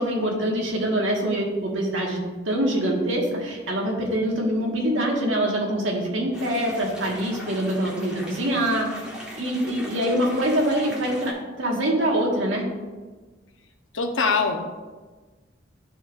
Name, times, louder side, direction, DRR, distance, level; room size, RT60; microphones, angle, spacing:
voice 1, 0.0-8.9 9.4-12.6, right 1 dB, 80° right, -1 dB, 1.5 m, -24 dB
sound 1, 6.3-11.3, equal, 5° right, 1.6 m, -39 dB
voice 2, 13.9-14.6, left 4 dB, 85° left, 5 dB, 0.8 m, -22 dB
12.5 x 4.4 x 2.5 m, 1.3 s
head